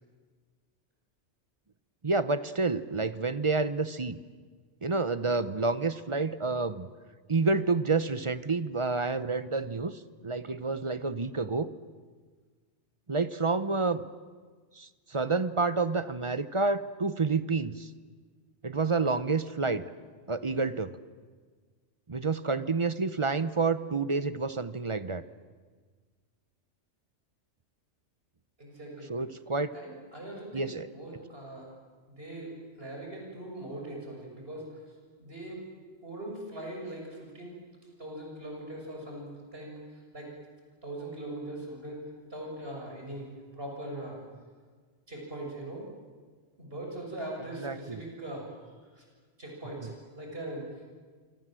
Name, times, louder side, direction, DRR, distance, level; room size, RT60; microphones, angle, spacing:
voice 1, 2.0-4.2 4.8-6.9 7.3-11.7 13.1-14.0 14.8-17.9 18.6-19.9 20.3-21.0 22.1-25.2 29.1-29.7 30.5-30.9 47.6-48.0, right 3 dB, 30° right, 13 dB, 0.8 m, -29 dB
voice 2, 28.6-29.2 29.7-31.7 32.1-34.8 35.2-35.7 36.0-37.6 38.0-40.3 40.8-42.0 42.3-43.3 43.5-44.2 45.1-45.9 46.6-48.5 48.9-49.0 49.4-49.9 50.2-50.7, right 1 dB, 55° right, 0 dB, 6.8 m, -41 dB
27.0 x 25.5 x 7.7 m, 1.5 s
omnidirectional pair, 1.2 m